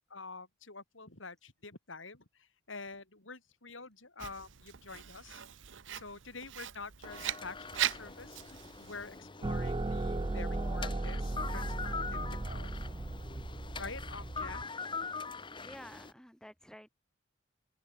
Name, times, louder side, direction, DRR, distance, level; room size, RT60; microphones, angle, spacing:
voice 1, 0.1-5.5 5.9-12.9 13.7-14.6, left 4 dB, 75° left, 4.8 m, -47 dB
Writing, 4.2-9.2, right 11 dB, 70° right, 0.8 m, -40 dB
sound 1, 7.0-16.1, left 4 dB, 25° left, 1.4 m, -43 dB
sound 2, 9.4-14.7, right 2 dB, 25° right, 0.5 m, -36 dB
voice 2, 15.6-16.9, equal, 5° left, 2.6 m, -51 dB
open air
head